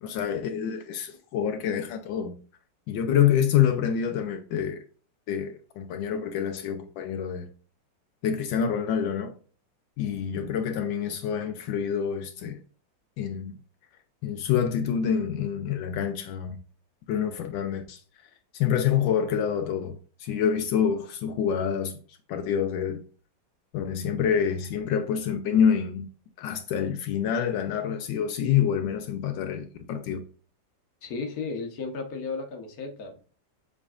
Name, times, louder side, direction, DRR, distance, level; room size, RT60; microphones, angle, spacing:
voice 1, 0.0-2.3 2.9-4.8 5.3-7.5 8.2-9.3 10.0-12.6 13.2-13.5 14.2-16.6 17.1-18.0 18.5-23.0 23.7-26.1 26.4-30.2, left 8 dB, 80° left, 1.4 m, -27 dB
voice 2, 31.0-33.2, left 4 dB, 55° left, 1.5 m, -34 dB
7.3 x 5.2 x 2.5 m
omnidirectional pair, 2.0 m